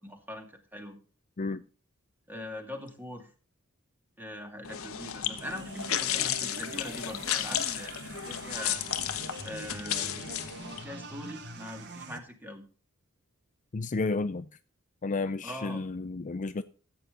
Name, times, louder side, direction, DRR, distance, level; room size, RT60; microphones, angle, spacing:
voice 1, 0.0-1.0 2.3-3.3 4.2-8.8 9.4-10.3 10.8-12.6 15.4-15.9, left 1 dB, 10° right, 2.4 m, -42 dB
sound 1, 4.6-10.8, left 10 dB, 80° left, 1.1 m, -33 dB
sound 2, 5.3-12.2, right 3 dB, 55° right, 1.4 m, -44 dB
voice 2, 13.7-14.5 15.0-16.6, left 3 dB, 35° left, 0.5 m, -31 dB
14.0 x 8.8 x 3.8 m
head